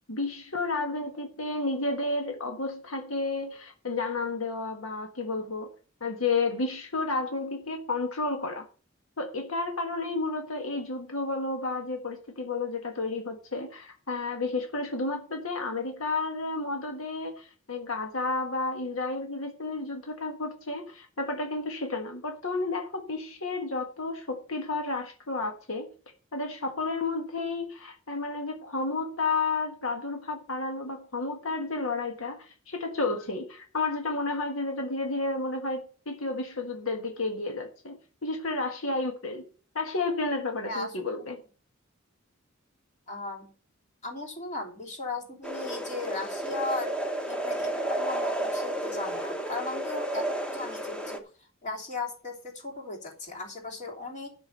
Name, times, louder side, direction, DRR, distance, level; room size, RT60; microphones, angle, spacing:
voice 1, 0.1-5.7 6.0-8.6 9.2-25.9 26.3-39.5 39.7-41.4, left 3 dB, 80° left, 1.5 m, -31 dB
voice 2, 40.6-41.3 43.1-43.5 44.0-46.9 47.3-51.2 51.6-54.3, left 3 dB, 35° left, 3.2 m, -37 dB
sound 1, 45.4-51.2, right 1 dB, 5° left, 1.2 m, -32 dB
10.5 x 6.2 x 6.6 m
head